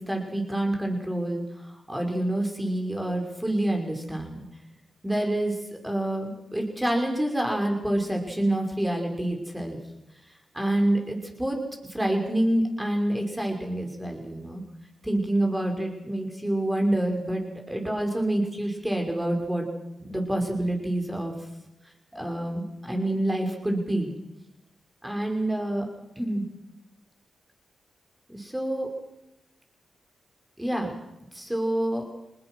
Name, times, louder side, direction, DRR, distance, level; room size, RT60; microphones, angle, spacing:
voice 1, 0.0-1.4 1.9-4.4 5.0-5.6 5.8-9.8 10.5-11.6 11.9-14.6 15.0-19.7 20.0-21.3 22.1-24.1 25.0-25.8 26.2-26.5 28.3-28.9 30.6-30.9 31.3-32.0, right 1 dB, 10° right, 2 dB, 5.7 m, -27 dB
23.0 x 19.5 x 6.3 m, 0.97 s
supercardioid pair, 40°, 0 cm